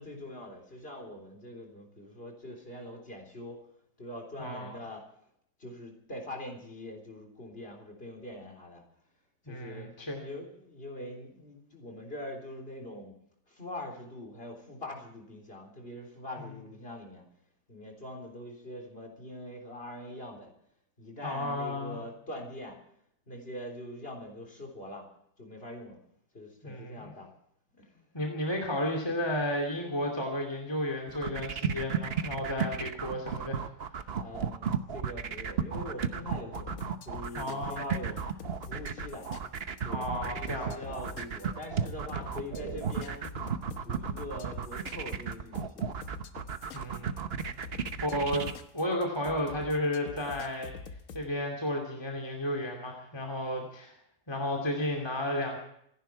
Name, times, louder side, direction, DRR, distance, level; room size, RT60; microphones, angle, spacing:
voice 1, 0.0-3.6 4.0-5.1 5.6-8.8 9.5-9.9 10.2-13.2 13.5-17.2 17.7-20.5 21.0-22.8 23.3-25.1 25.4-26.0 26.3-27.3 27.8-28.1 34.2-36.8 37.1-38.3 38.6-39.3 39.8-43.3 43.8-45.9, left 1 dB, 35° left, 2 dB, 3.9 m, -43 dB
voice 2, 4.4-4.7 9.5-10.2 21.2-22.0 26.6-27.1 28.1-33.6 37.4-37.8 39.9-40.7 46.7-47.1 48.0-50.7 51.1-53.9 54.3-55.6, left 1 dB, 15° left, 0 dB, 2.6 m, -33 dB
sound 1, 31.1-48.5, right 7 dB, 45° right, 0.9 m, -34 dB
sound 2, 36.5-51.2, left 5 dB, 55° left, 1.3 m, -45 dB
26.5 x 11.0 x 4.6 m, 0.71 s
omnidirectional pair, 1.8 m